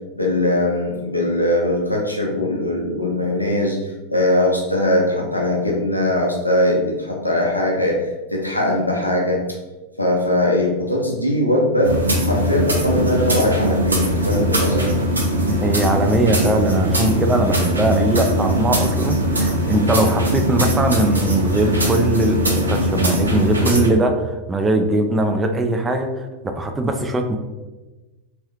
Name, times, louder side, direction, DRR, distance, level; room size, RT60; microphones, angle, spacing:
voice 1, 0.1-9.4 10.0-11.9 12.2-14.9, left 1 dB, 85° left, -1 dB, 0.8 m, -20 dB
sound 1, 11.8-23.9, equal, 80° right, 0.7 m, -20 dB
voice 2, 15.5-26.3 26.5-27.4, right 1 dB, 15° right, 5 dB, 0.4 m, -20 dB
3.5 x 2.9 x 3.2 m, 1.2 s
figure-of-eight pair, 90°, 0 cm